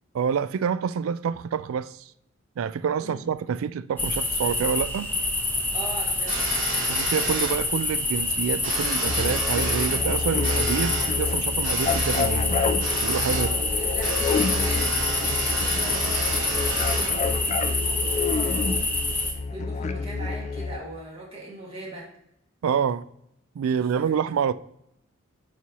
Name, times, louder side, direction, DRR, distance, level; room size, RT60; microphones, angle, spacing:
voice 1, 0.1-2.1 2.6-5.1 6.9-13.5 22.6-23.1 23.6-24.5, right 7 dB, 85° right, 0.3 m, -27 dB
voice 2, 3.0-3.3 5.7-6.6 13.3-15.3 15.8-18.8 19.5-22.1 24.1-24.2, right 1 dB, 25° right, 2.0 m, -40 dB
sound 1, 4.0-19.3, left 2 dB, 10° left, 0.7 m, -27 dB
sound 2, 6.3-7.5 8.6-10.0 10.4-11.0 11.6-12.2 12.8-13.4 14.0-17.1, right 2 dB, 65° right, 2.4 m, -31 dB
sound 3, 9.0-20.8, left 4 dB, 35° left, 0.3 m, -29 dB
9.2 x 4.2 x 2.9 m
head